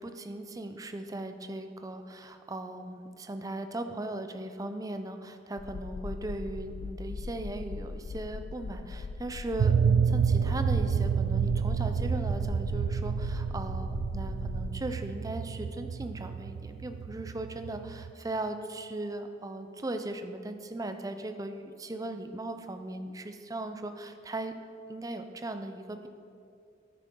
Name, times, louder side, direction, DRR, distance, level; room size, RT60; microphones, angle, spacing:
voice 1, 0.0-24.5 24.9-26.1, right 2 dB, 20° right, 7 dB, 0.5 m, -38 dB
sound 1, 5.6-14.7, left 3 dB, 65° left, 0.3 m, -39 dB
sound 2, 9.6-18.1, right 6 dB, 80° right, 0.3 m, -29 dB
10.0 x 9.2 x 3.7 m, 2.4 s
head